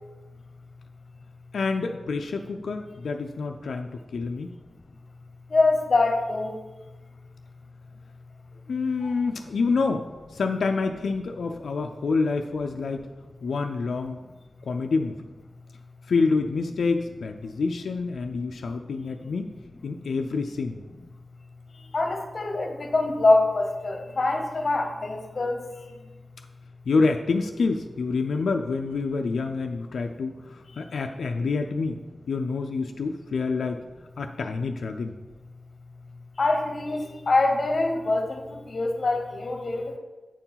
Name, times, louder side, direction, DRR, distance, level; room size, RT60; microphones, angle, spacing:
voice 1, 1.5-4.5 8.7-10.1 10.3-13.0 13.4-14.2 14.7-15.3 16.1-19.5 19.8-20.8 26.9-32.0 32.3-33.8 34.2-35.1, left 4 dB, 90° left, 4 dB, 0.5 m, -27 dB
voice 2, 5.5-6.6 9.0-9.1 21.9-25.6 36.4-39.9, left 2 dB, 40° left, 5 dB, 1.0 m, -24 dB
8.8 x 4.6 x 5.7 m, 1.2 s
wide cardioid pair, 155°, 0 cm